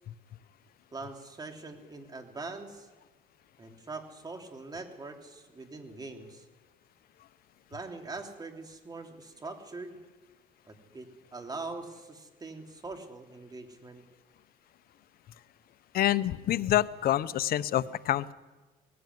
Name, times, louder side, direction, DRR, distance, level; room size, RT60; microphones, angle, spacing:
voice 1, 0.9-2.9 3.6-6.4 7.7-10.0 10.7-14.0, right 3 dB, 25° right, 4 dB, 3.2 m, -42 dB
voice 2, 15.9-18.3, left 13 dB, 60° left, 14 dB, 0.8 m, -27 dB
19.5 x 17.5 x 9.5 m, 1.3 s
cardioid pair, 110°, 17 cm